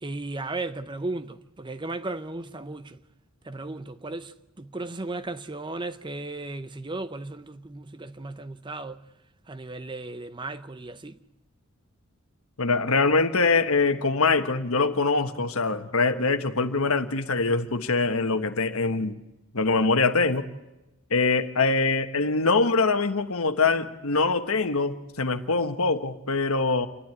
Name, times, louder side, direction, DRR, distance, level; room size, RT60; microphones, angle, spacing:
voice 1, 0.0-3.0 3.4-9.0 9.5-11.2, right 2 dB, 20° right, 0.7 m, -35 dB
voice 2, 12.6-19.2 19.5-20.5 21.1-26.9, left 3 dB, 75° left, 1.4 m, -23 dB
29.0 x 12.0 x 9.6 m
head